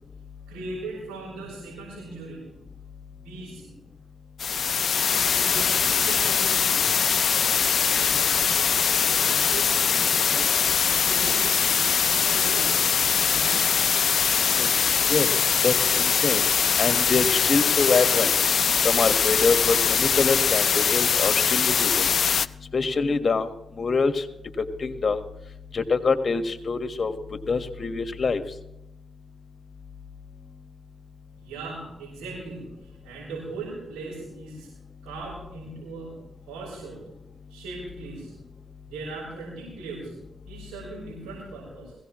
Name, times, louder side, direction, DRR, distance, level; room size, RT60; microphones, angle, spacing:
voice 1, 0.5-2.6 3.2-3.8 5.3-7.0 7.9-10.5 11.0-12.9 13.3-13.8 31.3-34.7 35.0-37.1 37.5-38.4 38.9-41.9, right 3 dB, 90° right, -6 dB, 6.1 m, -39 dB
sound 1, 4.4-22.5, left 7 dB, 60° left, 0.5 m, -22 dB
voice 2, 15.6-16.4 16.8-18.3 18.8-22.1 22.7-23.5 23.8-24.2 24.8-25.2 25.7-27.1 27.5-28.4, left 4 dB, 45° left, 8 dB, 1.7 m, -24 dB
21.0 x 17.0 x 3.2 m, 0.90 s
supercardioid pair, 55°, 0 cm